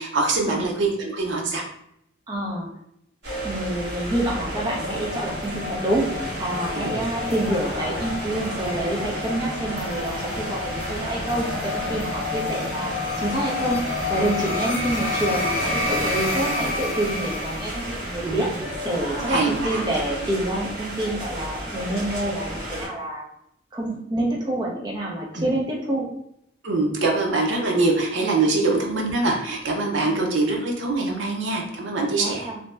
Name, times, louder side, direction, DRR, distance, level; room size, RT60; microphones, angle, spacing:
voice 1, 0.0-1.6 6.8-6.9 18.2-18.4 19.3-19.8 25.3-25.5 26.6-32.5, right 3 dB, 75° right, 0 dB, 0.6 m, -23 dB
voice 2, 2.3-2.7 3.4-6.1 6.4-12.9 13.2-13.8 14.1-18.5 18.8-23.3 23.7-26.1 28.6-28.7 30.0-30.4 32.2-32.6, right 1 dB, 20° right, -3 dB, 0.6 m, -27 dB
sound 1, 3.2-22.9, equal, 60° right, 1.1 m, -33 dB
sound 2, 3.8-18.4, left 2 dB, 45° left, 0.6 m, -30 dB
2.7 x 2.1 x 3.3 m, 0.75 s
head